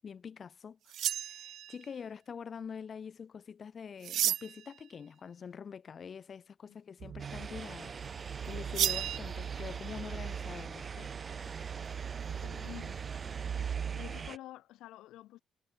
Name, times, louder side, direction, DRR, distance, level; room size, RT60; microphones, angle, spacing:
voice 1, 0.0-11.1, left 6 dB, 50° left, 7.1 m, -45 dB
sound 1, 0.9-1.8 4.0-4.7 8.7-9.2, right 11 dB, 75° right, 0.3 m, -32 dB
sound 2, 7.0-14.3, right 8 dB, 55° right, 1.0 m, -40 dB
sound 3, 7.2-14.4, right 5 dB, 40° right, 3.0 m, -45 dB
voice 2, 12.3-13.0 13.9-15.4, left 15 dB, 90° left, 1.8 m, -49 dB
cardioid pair, 90°, 0 cm